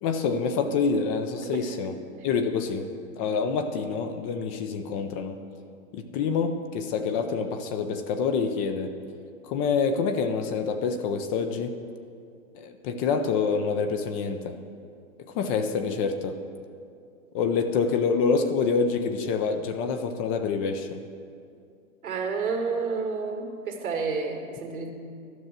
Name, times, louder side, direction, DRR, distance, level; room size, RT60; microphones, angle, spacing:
voice 1, 0.0-2.0 2.2-2.9 3.2-5.4 5.9-9.0 9.4-11.8 12.5-14.6 15.3-16.4 17.3-21.0, left 5 dB, 25° left, 8 dB, 0.5 m, -27 dB
voice 2, 22.0-24.9, right 4 dB, 85° right, 2 dB, 2.2 m, -30 dB
12.5 x 6.4 x 7.4 m, 2.4 s
hypercardioid pair, 130°, 41 cm